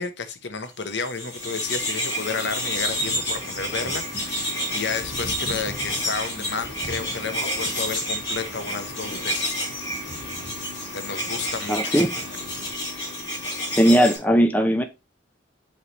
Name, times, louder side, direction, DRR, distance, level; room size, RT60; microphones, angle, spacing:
voice 1, 0.0-9.9 10.9-12.1, left 5 dB, 70° left, 1.0 m, -32 dB
sound 1, 0.9-14.2, left 1 dB, 25° left, 4.4 m, -29 dB
sound 2, 2.4-12.7, right 2 dB, 30° right, 1.0 m, -42 dB
voice 2, 11.7-12.1 13.7-14.8, equal, 10° left, 0.7 m, -18 dB
8.1 x 3.4 x 4.1 m
head